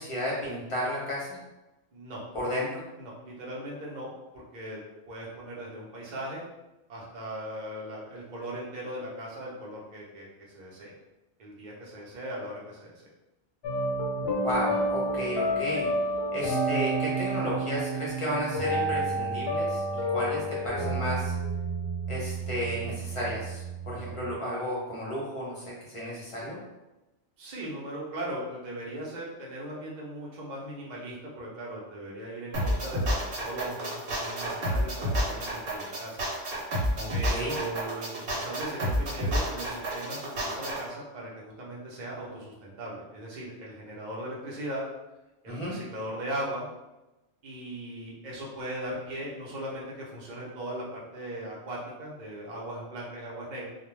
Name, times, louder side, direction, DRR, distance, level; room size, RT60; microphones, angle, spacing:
voice 1, 0.0-1.4 2.3-2.8 14.4-15.9 16.3-21.3 22.1-26.6 36.9-37.6 45.5-45.8, equal, 35° left, -5 dB, 0.6 m, -33 dB
voice 2, 1.9-2.2 3.0-6.5 6.9-10.3 10.5-10.9 11.4-13.1 27.4-36.2 37.1-44.8 45.4-46.7 47.4-53.7, right 1 dB, 45° right, -4 dB, 0.7 m, -38 dB
sound 1, 13.6-24.3, right 1 dB, 65° left, 0.8 m, -30 dB
sound 2, 32.5-40.8, equal, 65° right, 1.0 m, -29 dB
2.4 x 2.1 x 3.1 m, 1.0 s
omnidirectional pair, 1.2 m